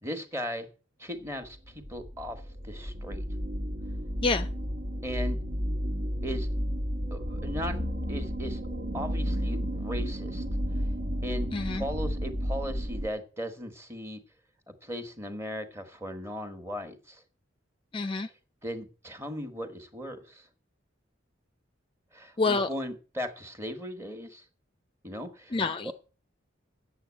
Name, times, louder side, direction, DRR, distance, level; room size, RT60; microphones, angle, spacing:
voice 1, 0.0-0.7 1.0-3.3 5.0-5.4 6.2-6.5 7.1-7.8 8.1-8.6 8.9-10.4 11.2-14.2 14.8-17.2 18.6-20.5 22.1-24.4 25.0-25.6 25.8-25.9, equal, 15° right, 1.4 m, -37 dB
sound 1, 1.4-13.1, equal, 60° right, 1.5 m, -32 dB
voice 2, 11.5-11.8 17.9-18.3 22.4-22.7 25.5-25.9, left 3 dB, 30° left, 0.5 m, -27 dB
8.6 x 7.0 x 8.4 m
head